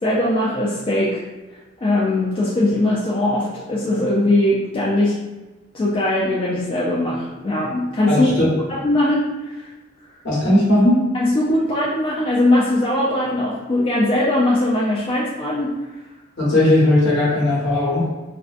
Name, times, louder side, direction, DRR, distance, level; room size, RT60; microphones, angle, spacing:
voice 1, 0.0-1.2 1.8-5.2 5.7-8.3 8.7-9.7 11.1-15.8, left 1 dB, 25° left, -6 dB, 0.3 m, -20 dB
voice 2, 8.1-8.5 10.2-11.0 16.4-18.1, left 1 dB, 60° left, -8 dB, 1.1 m, -17 dB
2.5 x 2.2 x 2.4 m, 1.2 s
head